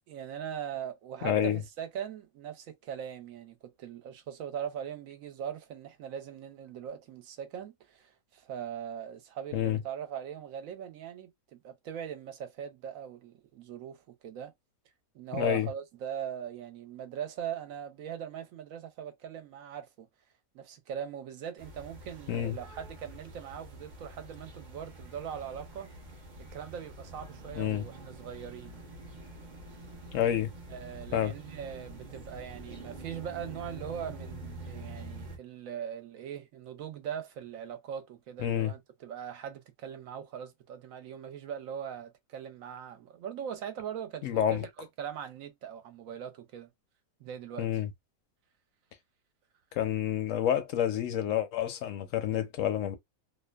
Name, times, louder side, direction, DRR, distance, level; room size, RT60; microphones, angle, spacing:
voice 1, 0.1-14.5 15.1-20.1 20.5-25.9 26.4-28.7 30.7-46.7 47.2-47.7, right 8 dB, 75° right, 1.0 m, -41 dB
voice 2, 1.2-1.6 9.5-9.8 15.3-15.7 22.3-22.6 27.5-27.8 30.1-30.5 31.1-31.3 38.4-38.7 44.2-44.6 47.6-47.9 49.8-53.0, left 10 dB, 70° left, 0.9 m, -28 dB
sound 1, 21.6-35.4, right 2 dB, 45° right, 0.6 m, -46 dB
2.6 x 2.2 x 2.2 m
omnidirectional pair, 1.5 m